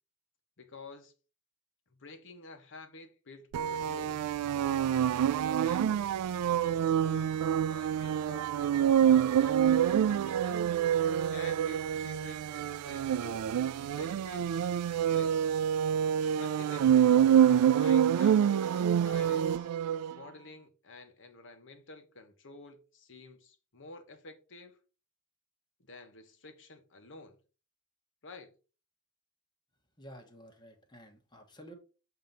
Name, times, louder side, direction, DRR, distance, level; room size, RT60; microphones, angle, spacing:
voice 1, 0.6-1.1 1.9-6.1 6.6-10.6 11.3-13.5 14.0-15.6 16.2-19.7 20.1-24.8 25.8-27.4 28.2-28.5, left 3 dB, 55° left, 1.1 m, -51 dB
sound 1, 3.5-20.1, right 9 dB, 80° right, 0.3 m, -27 dB
voice 2, 30.0-31.7, equal, 20° left, 1.3 m, -51 dB
7.4 x 2.9 x 5.2 m
head